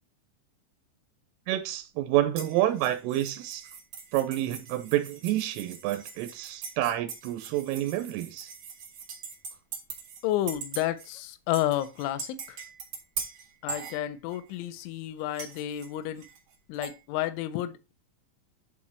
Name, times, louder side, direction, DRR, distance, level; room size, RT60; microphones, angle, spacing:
voice 1, 1.5-3.7 4.1-8.5, right 13 dB, 90° right, 3.3 m, -28 dB
sound 1, 2.4-10.2 10.5-11.1 11.5-14.5 15.3-17.0, right 6 dB, 65° right, 1.5 m, -41 dB
voice 2, 10.2-12.6 13.6-16.3 16.7-17.9, left 13 dB, 85° left, 2.7 m, -31 dB
10.0 x 4.4 x 4.3 m
omnidirectional pair, 5.9 m